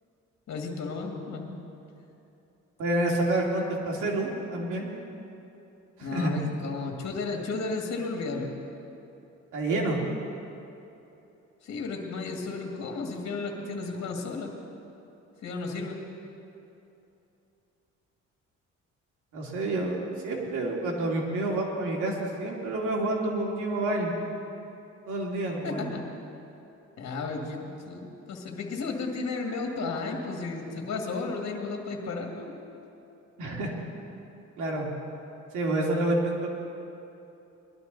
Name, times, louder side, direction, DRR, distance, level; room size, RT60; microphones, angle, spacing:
voice 1, 0.5-1.6 6.0-8.5 11.6-14.5 15.4-16.0 25.6-26.0 27.0-32.5, left 3 dB, 60° left, 1 dB, 2.1 m, -33 dB
voice 2, 2.8-4.9 6.0-6.4 9.5-10.0 19.3-24.1 25.1-25.9 33.4-33.7 34.6-34.9 35.5-36.5, right 2 dB, 80° right, -2 dB, 2.7 m, -28 dB
21.0 x 12.5 x 4.1 m, 2.9 s
cardioid pair, 90°, 30 cm